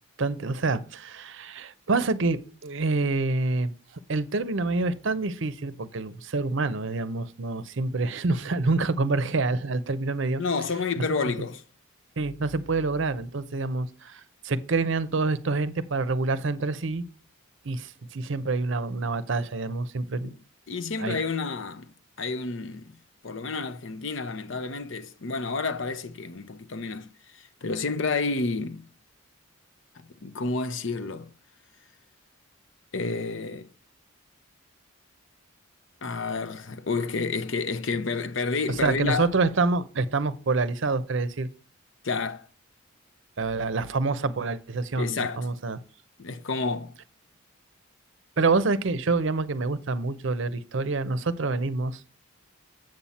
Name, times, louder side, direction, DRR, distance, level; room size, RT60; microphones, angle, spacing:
voice 1, 0.2-3.7 4.1-10.4 11.0-11.3 12.2-17.0 17.6-20.4 21.0-21.2 38.8-41.5 43.4-45.8 48.4-52.0, right 3 dB, 60° right, 0.6 m, -27 dB
voice 2, 10.4-11.6 20.7-23.0 23.2-28.9 30.2-31.3 32.9-33.7 36.0-39.3 42.0-42.5 45.0-45.5 46.2-47.0, left 4 dB, 60° left, 0.6 m, -30 dB
7.7 x 7.2 x 4.2 m
head